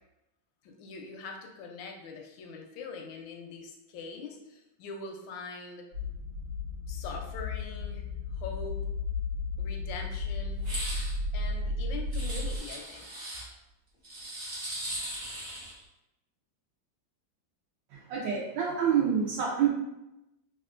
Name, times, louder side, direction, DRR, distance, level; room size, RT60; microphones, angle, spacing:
voice 1, 0.6-5.9 6.9-8.1 8.3-8.8 9.6-10.6 11.3-13.1, left 4 dB, 85° left, 2 dB, 1.3 m, -42 dB
sound 1, 5.9-12.6, left 3 dB, 50° right, 1.2 m, -34 dB
sound 2, 10.6-11.1 12.1-13.4 14.0-15.8, right 1 dB, 30° right, 0.8 m, -38 dB
voice 2, 18.1-19.7, right 7 dB, 80° right, -5 dB, 1.3 m, -27 dB
3.6 x 2.4 x 2.4 m, 0.91 s
omnidirectional pair, 2.0 m